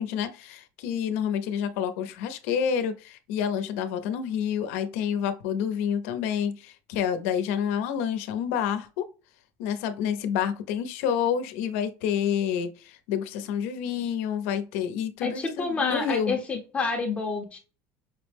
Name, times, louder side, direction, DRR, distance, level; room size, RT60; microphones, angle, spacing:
voice 1, 0.0-9.1 9.6-16.3, left 8 dB, 85° left, 0.7 m, -28 dB
voice 2, 15.2-17.6, left 4 dB, 15° left, 0.6 m, -28 dB
5.5 x 2.1 x 3.4 m
cardioid pair, 175°, 8 cm